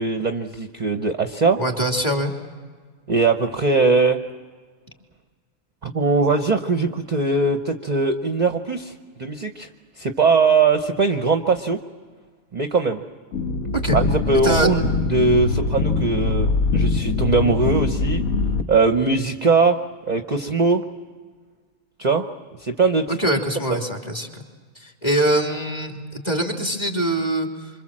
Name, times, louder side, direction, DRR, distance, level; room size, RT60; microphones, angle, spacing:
voice 1, 0.0-1.6 3.1-4.2 5.8-8.9 9.2-9.7 10.0-11.8 12.5-13.0 13.9-18.2 18.7-19.8 20.1-20.8 22.0-22.3 22.6-23.4 23.7-23.8, right 4 dB, 35° right, 6 dB, 0.9 m, -20 dB
voice 2, 1.6-2.3 13.7-14.0 14.4-14.7 23.1-24.4 24.7-27.7, right 1 dB, 20° left, 1 dB, 2.9 m, -23 dB
sound 1, 13.3-18.6, left 3 dB, 80° left, 1.5 m, -22 dB
26.5 x 25.5 x 7.5 m, 1.5 s
omnidirectional pair, 1.5 m